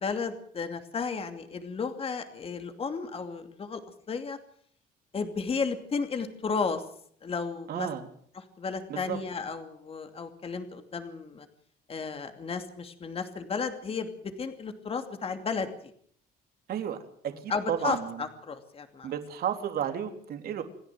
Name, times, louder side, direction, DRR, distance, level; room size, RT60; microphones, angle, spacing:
voice 1, 0.0-3.8 4.1-4.4 5.1-6.8 7.2-7.9 8.3-11.5 11.9-15.7 17.5-19.1, left 5 dB, 35° left, 7 dB, 2.7 m, -33 dB
voice 2, 7.7-8.1 8.9-9.2 16.7-17.0 17.4-18.2 19.0-20.6, right 9 dB, 65° right, 6 dB, 3.5 m, -32 dB
28.0 x 11.0 x 9.3 m, 0.63 s
cardioid pair, 110°, 17 cm